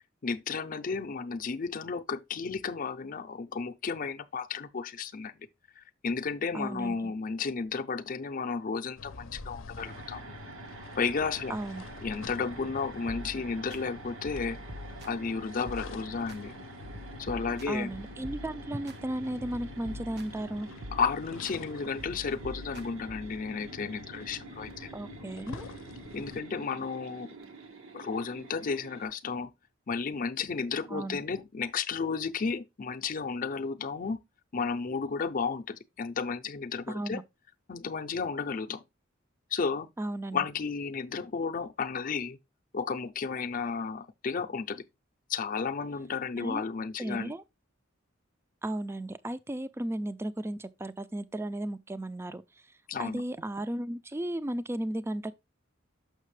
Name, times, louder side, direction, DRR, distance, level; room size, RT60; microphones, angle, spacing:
voice 1, 0.2-5.3 5.8-10.4 10.9-11.6 12.0-14.6 15.0-16.5 17.2-17.9 20.9-24.9 26.1-27.3 27.9-29.5 29.9-34.2 34.5-37.2 37.7-38.8 39.5-39.9 40.3-42.4 42.7-44.8 45.3-47.3 52.9-53.2, left 5 dB, 45° left, 0.5 m, -33 dB
voice 2, 6.5-7.1 11.5-11.8 17.7-20.7 24.9-25.7 30.9-31.2 36.9-37.2 40.0-40.4 46.4-46.6 47.0-47.4 48.6-52.4 53.0-55.3, right 1 dB, 10° right, 0.4 m, -35 dB
sound 1, 9.0-26.4, left 4 dB, 85° left, 0.6 m, -47 dB
sound 2, 9.8-29.1, right 3 dB, 85° right, 1.3 m, -48 dB
sound 3, 13.1-13.8 14.2-15.3 15.7-16.4 16.8-19.0 19.4-20.5 20.8-21.6 22.0-23.4, left 1 dB, 55° right, 0.8 m, -45 dB
6.5 x 5.9 x 3.1 m
head